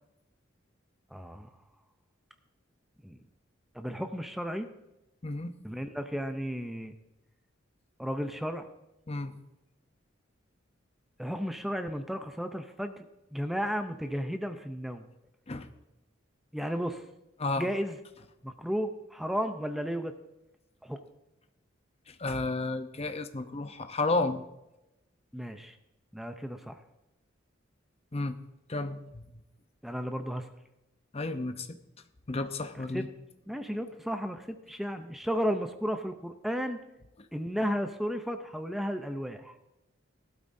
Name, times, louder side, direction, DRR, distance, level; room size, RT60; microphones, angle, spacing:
voice 1, 1.1-1.5 3.0-3.2 3.7-4.7 5.6-6.9 8.0-8.7 11.2-15.1 16.5-17.0 17.6-18.0 18.4-20.1 20.8-21.0 25.3-25.7 26.1-26.8 29.8-30.5 32.8-33.0 33.5-36.8 37.3-39.5, equal, ahead, 7 dB, 0.6 m, -33 dB
voice 2, 5.2-5.5 9.1-9.4 15.5-15.7 17.4-17.7 22.1-24.4 28.1-28.4 28.7-29.3 31.1-31.8 32.3-33.1 37.5-37.6, left 2 dB, 30° left, 8 dB, 0.7 m, -32 dB
18.0 x 12.5 x 2.7 m, 0.93 s
head